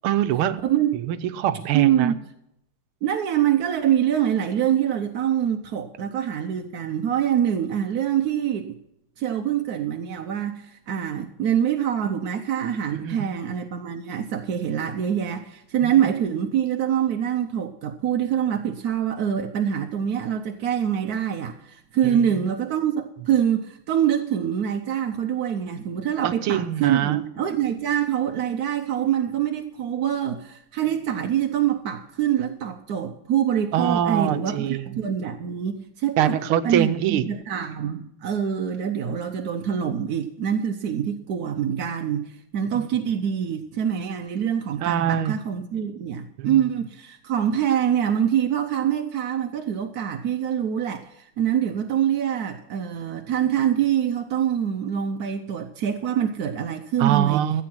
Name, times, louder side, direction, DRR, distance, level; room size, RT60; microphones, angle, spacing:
voice 1, 0.0-0.6 1.1-2.1 12.9-13.4 15.8-15.9 22.0-22.3 26.2-27.2 33.7-35.0 36.2-37.3 42.7-42.8 44.8-45.4 46.4-46.7 57.0-57.6, right 11 dB, 90° right, 1.7 m, -24 dB
voice 2, 0.6-1.0 1.7-2.2 3.0-8.8 9.2-36.4 36.6-57.4, right 9 dB, 60° right, 1.0 m, -25 dB
14.5 x 8.6 x 6.1 m
omnidirectional pair, 2.3 m